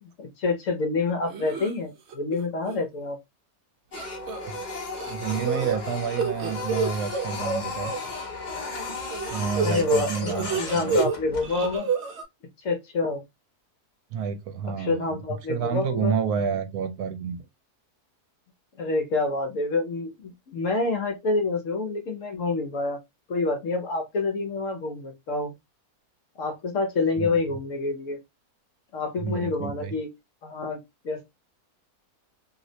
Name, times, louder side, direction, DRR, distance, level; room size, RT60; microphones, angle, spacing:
voice 1, 0.0-3.2 9.6-11.9 12.6-13.2 14.6-16.2 18.8-23.0 23.3-25.5 26.4-28.2 28.9-30.1 30.4-30.8 31.0-31.2, left 3 dB, 60° left, 1.0 m, -27 dB
sound 1, 1.3-1.7 2.1-2.4 2.7-2.8 3.9-4.6 4.9-8.0 9.1-11.2 11.4-12.2, right 5 dB, 60° right, 0.7 m, -28 dB
Printer, 3.9-11.8, left 3 dB, 45° left, 0.6 m, -35 dB
voice 2, 5.1-7.9 9.3-11.0 14.1-15.2 15.5-17.4 27.2-27.4 29.2-29.9, right 7 dB, 75° right, 1.1 m, -29 dB
3.1 x 2.8 x 2.6 m
omnidirectional pair, 1.7 m